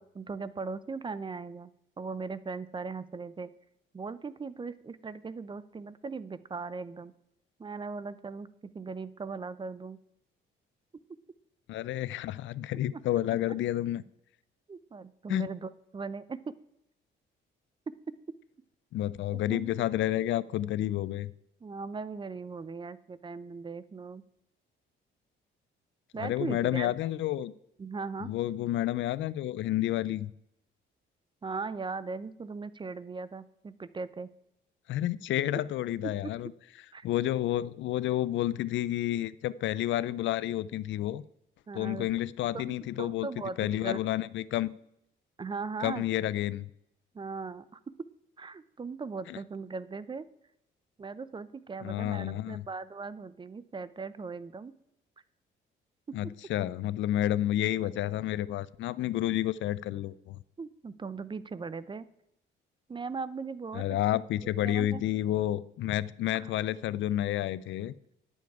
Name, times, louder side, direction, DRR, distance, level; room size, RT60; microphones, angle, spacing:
voice 1, 0.0-1.7 2.0-3.5 3.9-7.1 7.6-8.5 8.7-10.0 13.3-13.4 14.7-16.5 19.3-19.8 21.6-24.2 26.1-26.9 27.8-28.3 31.4-34.3 36.0-36.1 36.9-37.0 41.7-42.1 42.5-44.0 45.4-46.0 47.1-48.1 48.4-50.3 51.0-54.7 56.1-56.2 60.6-62.1 62.9-65.0 66.3-66.5, right 4 dB, 25° right, 16 dB, 0.5 m, -39 dB
voice 2, 11.7-14.0 15.3-15.5 18.9-21.3 26.2-27.5 28.2-30.3 34.9-36.5 37.0-41.2 41.7-43.3 43.6-44.7 45.8-46.7 49.3-49.4 51.8-52.6 56.1-60.4 63.7-67.9, left 13 dB, 70° left, 18 dB, 0.4 m, -30 dB
10.5 x 7.2 x 4.7 m, 0.79 s
cardioid pair, 90°, 20 cm